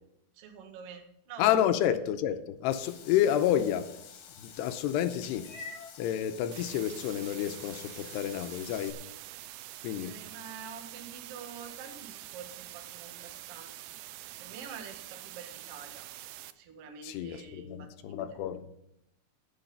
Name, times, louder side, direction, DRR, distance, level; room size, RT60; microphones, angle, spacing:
voice 1, 0.3-1.6 10.0-16.1 16.5-18.4, right 6 dB, 60° right, 1.6 m, -47 dB
voice 2, 1.4-4.0 4.4-5.5 6.0-9.0 9.8-10.2 17.0-18.7, left 11 dB, 80° left, 2.7 m, -29 dB
Meow / Water / Bathtub (filling or washing), 2.7-8.9, left 6 dB, 60° left, 2.5 m, -48 dB
sound 1, 6.5-16.5, right 15 dB, 85° right, 2.9 m, -46 dB
16.0 x 6.3 x 5.4 m
omnidirectional pair, 5.1 m